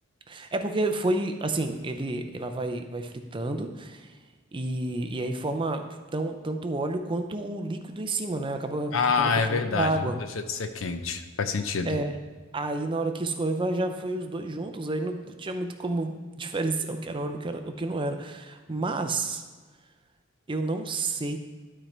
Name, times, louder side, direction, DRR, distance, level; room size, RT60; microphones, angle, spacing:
voice 1, 0.3-4.1 4.5-10.2 11.8-12.2 12.5-19.4 20.5-21.4, right 2 dB, 25° right, 6 dB, 0.5 m, -30 dB
voice 2, 8.9-10.0 10.5-12.0, left 5 dB, 85° left, 8 dB, 0.6 m, -26 dB
12.0 x 4.4 x 3.3 m, 1.4 s
head